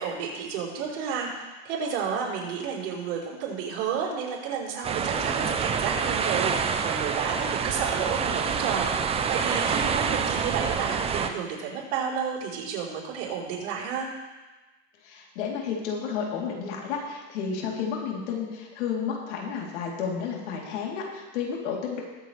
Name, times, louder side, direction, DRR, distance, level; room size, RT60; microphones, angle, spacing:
voice 1, 0.0-14.1, right 6 dB, 70° right, -4 dB, 4.5 m, -31 dB
sound 1, 4.8-11.3, right 6 dB, 20° right, 0.6 m, -27 dB
voice 2, 15.0-22.0, left 6 dB, 85° left, -2 dB, 3.4 m, -31 dB
21.0 x 8.1 x 3.4 m, 1.2 s
supercardioid pair, 150°, 34 cm